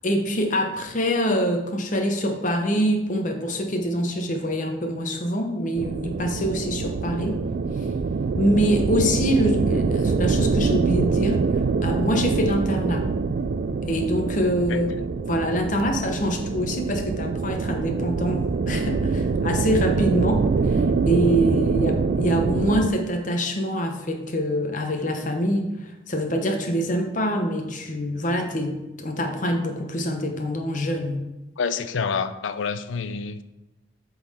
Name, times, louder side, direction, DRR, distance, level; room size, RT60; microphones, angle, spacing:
voice 1, 0.0-7.4 8.3-11.4 11.8-13.1 13.9-14.9 15.3-31.2, equal, 40° left, 0.9 m, -25 dB
sound 1, 5.8-22.9, right 4 dB, 55° right, 0.3 m, -24 dB
voice 2, 31.6-33.4, left 5 dB, 80° left, 0.4 m, -27 dB
7.6 x 4.0 x 4.2 m
head